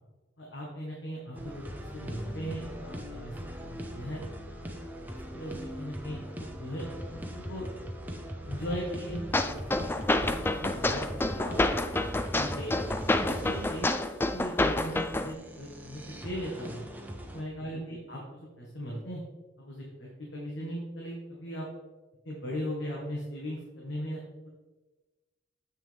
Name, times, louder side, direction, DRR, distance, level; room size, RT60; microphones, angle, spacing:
voice 1, 0.4-3.3 3.7-4.2 4.7-4.8 5.3-7.7 8.5-9.2 9.8-9.9 10.2-11.6 12.3-12.8 13.1-13.9 14.3-16.8 17.3-19.2 19.6-21.7 22.2-24.5, equal, 75° left, -3 dB, 1.5 m, -38 dB
sound 1, 1.3-17.4, equal, 10° right, 0.8 m, -40 dB
sound 2, 9.3-15.3, left 2 dB, 10° left, 0.3 m, -28 dB
7.7 x 6.6 x 3.5 m, 1.2 s
head